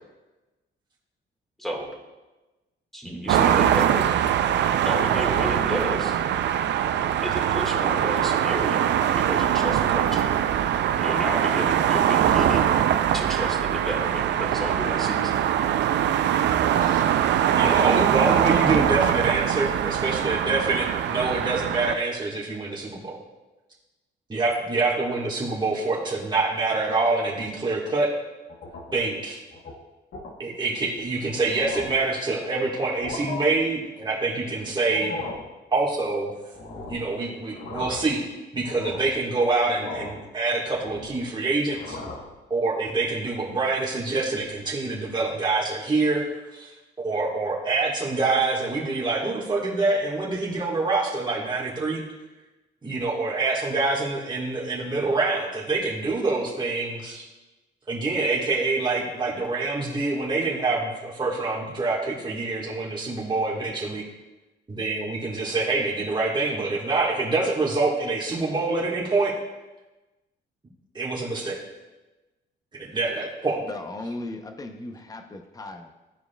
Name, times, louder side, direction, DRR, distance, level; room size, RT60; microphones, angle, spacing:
voice 1, 2.9-4.1 4.8-6.2 7.2-8.9 9.2-10.3 11.0-12.7 13.1-15.4, equal, ahead, -1 dB, 1.6 m, -31 dB
sound 1, 3.3-22.0, right 10 dB, 65° right, 0.4 m, -22 dB
voice 2, 17.6-23.2 24.3-28.1 28.9-29.4 30.4-35.1 35.7-36.3 36.9-38.2 38.5-42.0 42.5-46.3 46.5-52.0 52.8-57.2 57.9-64.0 64.7-69.4 70.9-71.6 72.8-73.6, right 3 dB, 20° right, -6 dB, 1.5 m, -26 dB
sound 2, 28.5-29.1 29.5-29.7 30.1-30.3 31.0-31.1 31.4-32.1 32.8-33.4 34.8-35.5 36.5-37.1 37.5-38.2 38.6-39.2 39.8-40.3 40.6-41.3 41.7-42.3, left 3 dB, 65° left, 1.1 m, -37 dB
voice 3, 73.7-75.9, left 2 dB, 20° left, 6 dB, 0.7 m, -36 dB
13.0 x 4.7 x 2.3 m, 1.1 s
cardioid pair, 90°, 20 cm